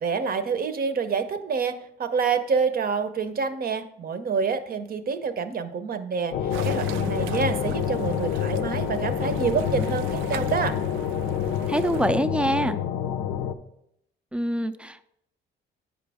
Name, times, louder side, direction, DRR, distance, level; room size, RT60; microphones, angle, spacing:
voice 1, 0.0-10.8, right 5 dB, 50° right, 10 dB, 0.7 m, -27 dB
sound 1, 6.3-13.5, left 8 dB, 85° left, 0.6 m, -27 dB
sound 2, 6.5-12.1, right 10 dB, 85° right, 0.4 m, -41 dB
voice 2, 11.7-12.8 14.3-15.0, right 1 dB, 5° right, 11 dB, 0.4 m, -25 dB
9.3 x 5.1 x 3.5 m, 0.76 s
cardioid pair, 90°, 20 cm